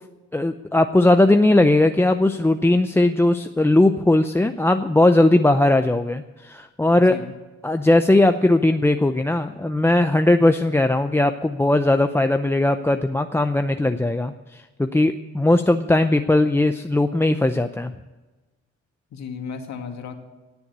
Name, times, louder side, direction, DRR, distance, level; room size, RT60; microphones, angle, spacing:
voice 1, 0.3-7.2 7.6-17.9, left 2 dB, 10° left, 7 dB, 0.6 m, -18 dB
voice 2, 7.0-7.3 19.1-20.2, left 5 dB, 65° left, 5 dB, 2.1 m, -34 dB
18.5 x 7.1 x 8.2 m, 1.2 s
cardioid pair, 90°, 30 cm